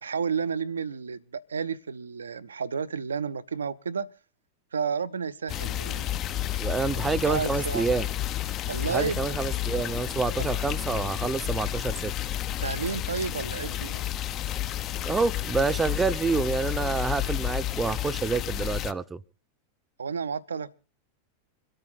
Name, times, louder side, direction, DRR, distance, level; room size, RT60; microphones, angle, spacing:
voice 1, 0.0-4.1 4.7-6.1 6.9-7.9 8.7-9.2 10.4-10.5 12.6-14.0 20.0-20.7, right 6 dB, 70° right, 0.7 m, -31 dB
sound 1, 5.5-18.9, left 12 dB, 35° left, 0.7 m, -31 dB
voice 2, 6.6-8.1 8.9-12.1 15.0-19.2, right 4 dB, 15° right, 0.7 m, -28 dB
26.5 x 8.9 x 3.9 m
figure-of-eight pair, 90°, 0 cm